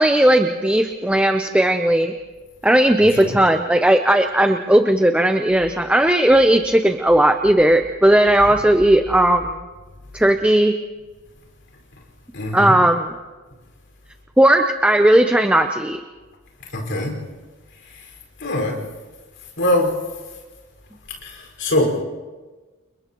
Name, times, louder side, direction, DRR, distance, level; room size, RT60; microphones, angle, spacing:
voice 1, 0.0-2.1 2.6-9.6 10.1-10.7 12.5-13.1 14.4-16.0, right 1 dB, 5° right, 6 dB, 0.6 m, -16 dB
voice 2, 3.0-3.4 12.3-12.8 16.7-17.2 17.8-18.1 18.4-18.8 19.6-19.9 21.2-22.0, left 1 dB, 60° left, 0 dB, 5.2 m, -23 dB
29.5 x 29.5 x 3.0 m, 1.3 s
head